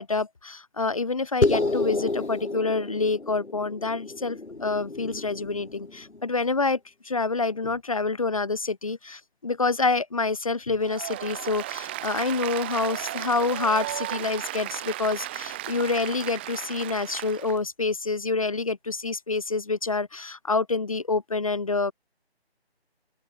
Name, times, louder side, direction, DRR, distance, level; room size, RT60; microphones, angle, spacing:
voice 1, 0.0-6.8 7.0-21.9, left 3 dB, 30° left, 1.2 m, -27 dB
sound 1, 1.4-6.2, left 3 dB, 85° left, 7.0 m, -30 dB
Applause, 10.8-17.6, right 16 dB, 10° right, 3.3 m, -35 dB
figure-of-eight pair, 175°, 33 cm